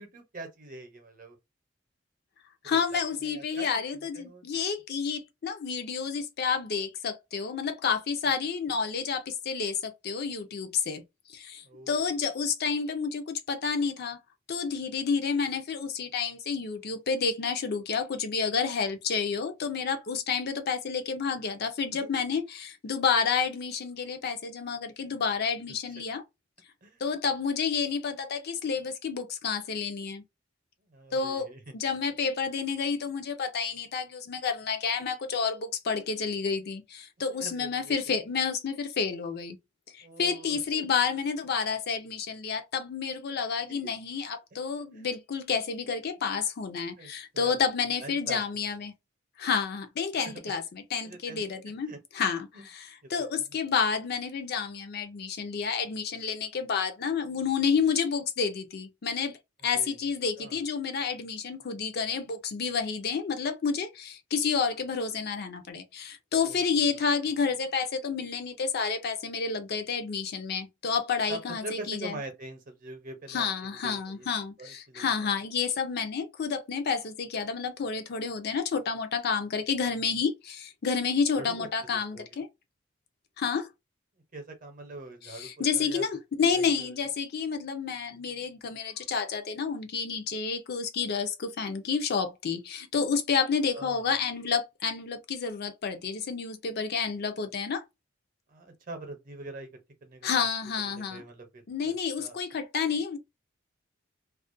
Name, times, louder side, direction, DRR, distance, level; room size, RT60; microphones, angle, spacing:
voice 1, 0.0-1.4 2.7-3.7 4.1-4.6 8.7-8.8 11.6-12.0 21.8-22.1 26.8-27.1 30.9-31.7 37.4-38.0 40.0-40.9 43.7-43.8 44.9-45.1 47.0-47.6 48.0-48.6 50.2-50.5 51.0-51.4 51.8-52.0 52.5-52.7 53.0-53.6 59.7-60.0 60.4-60.6 66.4-66.8 71.3-74.3 74.6-75.3 81.3-82.4 84.3-86.1 86.5-87.0 93.7-94.1 98.5-99.7 100.0-100.5 100.8-102.4, right 2 dB, 45° right, 0.7 m, -44 dB
voice 2, 2.6-11.0 11.3-14.2 14.5-26.2 27.0-30.2 31.1-39.6 39.9-48.9 49.4-59.4 59.6-72.2 73.3-82.5 83.4-83.7 85.2-97.8 100.2-101.2 101.7-103.2, left 6 dB, 55° left, 0.5 m, -30 dB
2.4 x 2.1 x 2.5 m
head